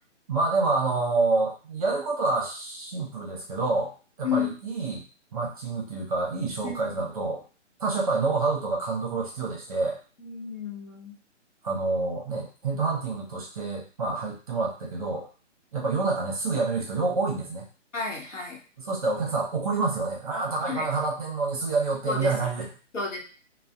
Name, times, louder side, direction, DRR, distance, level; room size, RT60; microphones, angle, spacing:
voice 1, 0.3-3.9 4.2-5.0 5.3-7.4 7.8-10.0 11.6-15.3 15.7-17.7 18.8-22.7, right 3 dB, 30° right, -1 dB, 0.5 m, -27 dB
voice 2, 6.6-7.1 10.2-11.1 17.9-18.6 20.7-20.9 22.1-22.5 22.9-23.2, left 6 dB, 85° left, 0 dB, 0.9 m, -32 dB
2.3 x 2.0 x 2.6 m, 0.36 s
figure-of-eight pair, 140°, 37 cm